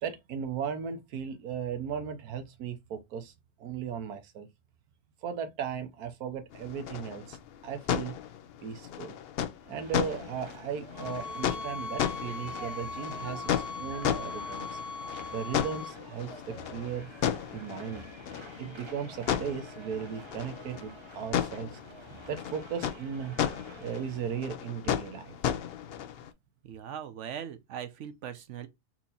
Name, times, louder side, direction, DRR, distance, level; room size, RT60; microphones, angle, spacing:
voice 1, 0.0-3.3 3.6-4.5 5.2-7.4 7.6-8.2 8.6-9.2 9.7-13.5 13.8-14.8 15.3-17.1 17.5-18.1 18.6-21.8 22.3-23.4 23.8-25.4, right 7 dB, 90° right, 1.3 m, -36 dB
sound 1, 6.5-26.3, left 9 dB, 75° left, 0.5 m, -35 dB
sound 2, 9.7-24.2, right 3 dB, 45° right, 0.3 m, -49 dB
sound 3, 10.9-16.0, left 3 dB, 45° left, 0.9 m, -39 dB
voice 2, 26.6-28.7, right 9 dB, 65° right, 0.9 m, -40 dB
4.4 x 2.7 x 4.1 m
omnidirectional pair, 1.6 m